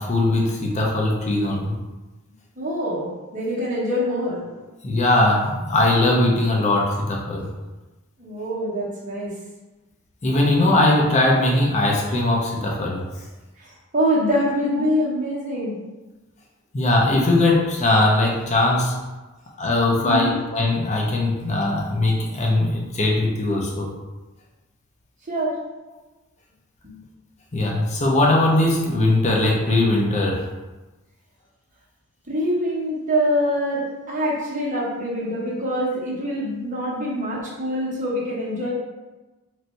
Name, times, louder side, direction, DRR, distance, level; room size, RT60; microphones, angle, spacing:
voice 1, 0.0-1.8 4.8-7.4 10.2-13.0 16.7-18.9 19.6-23.9 27.5-30.4, left 2 dB, 30° left, -2 dB, 0.5 m, -20 dB
voice 2, 2.6-4.6 8.2-9.3 13.6-15.8 20.0-20.4 25.3-25.6 26.8-27.0 32.3-38.7, equal, 35° right, -6 dB, 1.0 m, -25 dB
3.1 x 2.6 x 4.3 m, 1.1 s
head